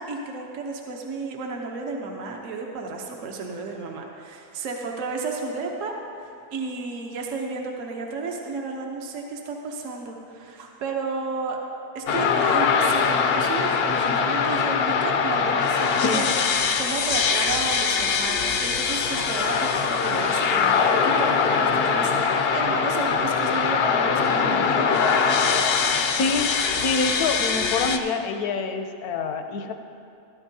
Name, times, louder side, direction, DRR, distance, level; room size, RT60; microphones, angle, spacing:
voice 1, 0.0-11.6 11.9-16.3 16.8-25.0, right 4 dB, 60° right, 1 dB, 1.2 m, -32 dB
sound 1, 12.1-28.0, left 5 dB, 60° left, 0.6 m, -22 dB
voice 2, 26.1-26.5 26.8-29.7, left 4 dB, 75° left, 6 dB, 1.2 m, -26 dB
14.5 x 12.5 x 2.7 m, 2.5 s
omnidirectional pair, 1.6 m